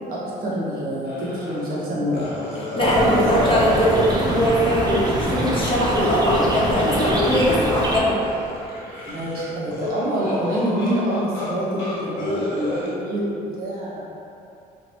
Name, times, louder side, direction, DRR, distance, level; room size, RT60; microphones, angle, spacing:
voice 1, 0.1-2.3 3.0-3.7 9.1-14.0, equal, 60° right, -7 dB, 1.2 m, -26 dB
sound 1, 1.0-1.8 2.1-6.4 6.7-7.9 8.2-11.5 11.8-12.9, left 1 dB, 90° left, 1.0 m, -32 dB
voice 2, 2.8-8.2, equal, 30° left, -6 dB, 0.9 m, -20 dB
sound 2, 2.8-8.0, right 1 dB, 25° right, 0.6 m, -24 dB
2.9 x 2.7 x 4.4 m, 2.8 s
cardioid pair, 110°, 17 cm